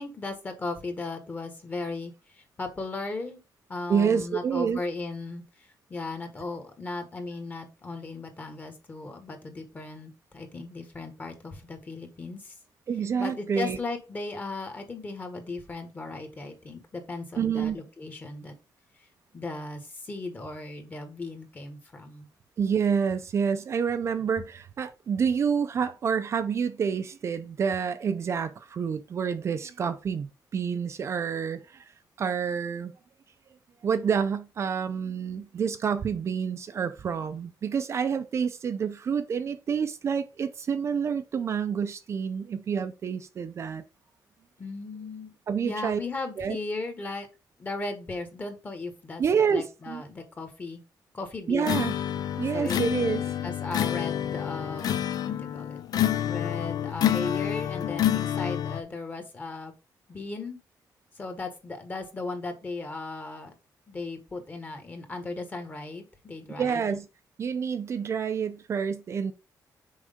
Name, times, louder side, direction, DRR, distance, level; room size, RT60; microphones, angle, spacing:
voice 1, 0.0-3.4 3.7-12.6 13.2-18.5 19.3-22.3 44.6-45.3 45.6-47.3 47.6-50.8 51.1-51.9 52.5-52.8 53.4-59.7 60.1-60.6 61.1-63.5 63.9-67.0, left 3 dB, 25° left, 1.5 m, -37 dB
voice 2, 3.9-4.8 12.9-13.8 17.4-17.8 22.6-31.9 32.2-32.9 33.8-43.8 45.5-46.0 46.4-46.6 49.2-50.0 51.5-51.9 52.4-53.4 66.6-67.1 67.4-69.3, right 6 dB, 40° right, 0.5 m, -28 dB
sound 1, 51.6-58.8, left 10 dB, 65° left, 0.5 m, -28 dB
6.3 x 4.6 x 3.6 m
wide cardioid pair, 170°, 7 cm